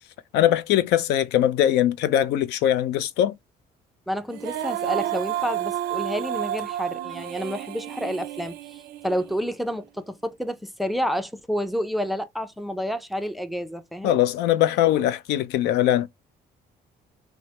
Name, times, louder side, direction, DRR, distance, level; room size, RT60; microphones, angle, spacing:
voice 1, 0.3-3.3 14.0-16.1, left 12 dB, 85° left, 0.5 m, -21 dB
voice 2, 4.1-14.2, equal, ahead, 0.4 m, -29 dB
Female singing, 4.3-9.5, right 13 dB, 70° right, 0.4 m, -31 dB
3.2 x 2.0 x 2.8 m
cardioid pair, 110°, 17 cm